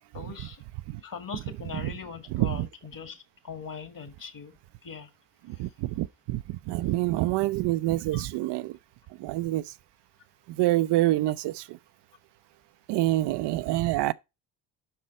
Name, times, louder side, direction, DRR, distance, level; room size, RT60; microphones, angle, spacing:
voice 1, 0.1-0.6 1.0-4.6 4.8-5.1 5.6-5.7 8.1-8.3, left 6 dB, 40° left, 1.9 m, -41 dB
voice 2, 2.3-2.7 5.6-8.8 9.2-9.6 10.6-11.8 12.9-14.1, right 16 dB, 55° right, 0.5 m, -26 dB
6.0 x 5.6 x 6.4 m
hypercardioid pair, 45°, 49 cm